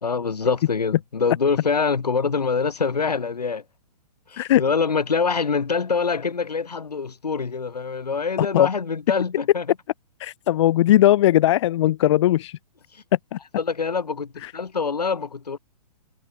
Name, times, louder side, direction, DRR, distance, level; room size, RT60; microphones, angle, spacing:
voice 1, 0.0-3.6 4.3-9.7 13.6-15.6, left 5 dB, 85° left, 2.4 m, -25 dB
voice 2, 8.4-8.7 10.2-12.6 13.3-13.4 14.4-14.5, left 13 dB, 50° left, 0.7 m, -19 dB
hypercardioid pair, 130°, 20 cm